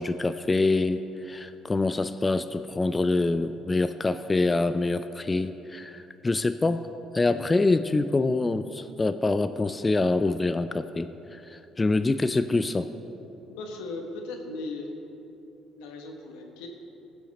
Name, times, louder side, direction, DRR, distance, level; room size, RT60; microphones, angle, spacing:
voice 1, 0.0-6.9 7.1-12.9, left 3 dB, 25° left, 11 dB, 0.4 m, -25 dB
voice 2, 13.5-14.9 15.8-16.7, left 2 dB, 85° left, 2 dB, 1.2 m, -37 dB
16.0 x 5.9 x 4.1 m, 3.0 s
supercardioid pair, 60°, 0 cm